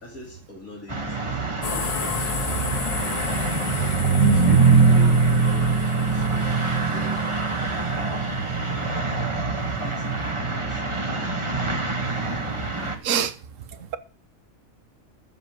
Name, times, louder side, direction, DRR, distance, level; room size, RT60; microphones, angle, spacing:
voice 1, 0.0-2.8 4.3-5.1 5.4-6.5 6.9-7.2 7.7-7.9 9.8-11.4 13.7-13.9, left 1 dB, 85° left, 3.2 m, -43 dB
sound 1, 0.9-13.0, right 4 dB, 20° right, 1.4 m, -23 dB
sound 2, 1.6-8.4, left 7 dB, 45° left, 0.5 m, -33 dB
voice 2, 4.2-4.6 13.0-13.3, right 6 dB, 70° right, 1.3 m, -23 dB
8.1 x 7.4 x 7.9 m
omnidirectional pair, 1.4 m